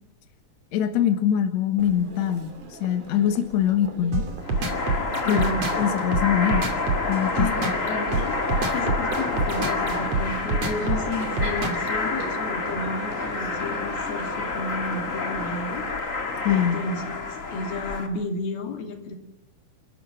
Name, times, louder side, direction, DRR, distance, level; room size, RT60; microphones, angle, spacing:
voice 1, 0.7-2.5 2.8-4.3 5.3-5.4 5.8-6.7 7.1-7.7 16.4-16.8, left 9 dB, 55° left, 7 dB, 2.5 m, -23 dB
Crowd, 1.8-15.9, right 3 dB, 80° right, 5.2 m, -40 dB
sound 1, 4.1-11.9, right 3 dB, 45° right, 3.4 m, -27 dB
sound 2, 4.4-18.1, left 3 dB, 30° left, 1.8 m, -29 dB
voice 2, 5.2-5.7 7.4-8.4 8.7-15.9 16.5-19.2, left 2 dB, 80° left, 4 dB, 4.7 m, -32 dB
28.5 x 13.5 x 9.0 m, 0.85 s
omnidirectional pair, 4.3 m